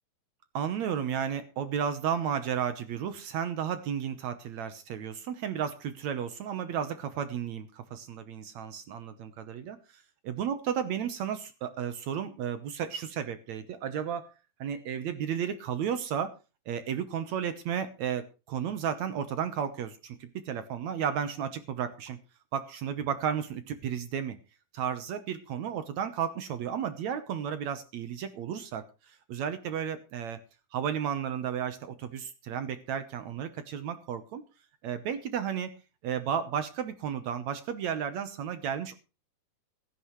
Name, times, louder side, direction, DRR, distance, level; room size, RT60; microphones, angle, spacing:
voice 1, 0.5-14.3 14.6-16.3 16.7-22.2 22.5-24.4 24.7-30.4 30.7-34.4 34.8-35.7 36.0-39.0, right 8 dB, 65° right, 11 dB, 1.8 m, -33 dB
16.5 x 14.0 x 3.1 m, 0.31 s
omnidirectional pair, 4.2 m